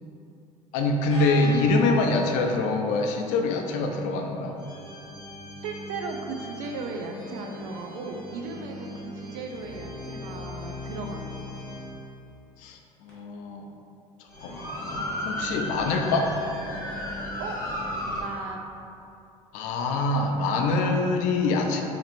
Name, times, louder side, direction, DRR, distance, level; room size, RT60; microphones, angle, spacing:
voice 1, 0.7-4.6 12.6-13.6 14.4-16.3 19.5-21.8, left 3 dB, 80° left, 3 dB, 0.4 m, -25 dB
sound 1, 0.8-2.6 4.6-12.0 13.1-13.2 14.3-18.2, left 1 dB, 15° left, 1.4 m, -36 dB
voice 2, 5.6-11.6 17.4-17.6 18.0-18.6, right 3 dB, 80° right, 2 dB, 0.5 m, -36 dB
2.9 x 2.5 x 4.2 m, 2.7 s
cardioid pair, 145°, 13 cm